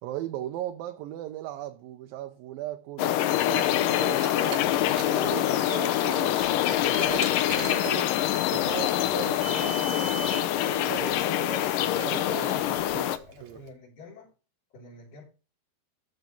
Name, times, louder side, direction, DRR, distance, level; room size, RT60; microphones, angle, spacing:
voice 1, 0.0-11.7 11.9-13.1 13.4-13.6, right 13 dB, 75° right, 2.3 m, -38 dB
sound 1, 3.0-13.2, left 13 dB, 75° left, 2.1 m, -25 dB
Car, 4.0-13.5, right 4 dB, 60° right, 2.2 m, -41 dB
voice 2, 12.9-14.3 14.7-15.2, left 4 dB, 50° left, 5.2 m, -47 dB
13.5 x 4.6 x 5.5 m
omnidirectional pair, 4.6 m